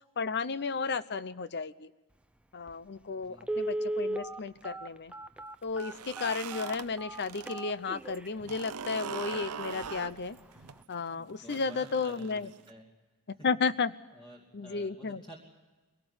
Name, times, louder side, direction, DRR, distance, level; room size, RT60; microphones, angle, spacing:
voice 1, 0.2-1.9 2.5-5.1 5.6-10.4 10.9-12.5 13.3-13.9 14.5-15.2, left 4 dB, 50° left, 15 dB, 0.8 m, -33 dB
Telephone, 2.7-2.8 3.4-8.3 8.8-8.9 9.3-9.4 9.8-10.1 10.4-10.5, right 1 dB, 5° right, 0.7 m, -36 dB
voice 2, 3.1-3.5 11.1-12.9 14.1-15.4, right 1 dB, 20° left, -1 dB, 2.8 m, -51 dB
sound 1, 5.7-7.6 7.9-12.7, right 7 dB, 90° right, 0.8 m, -42 dB
23.0 x 17.5 x 8.0 m, 1.2 s
head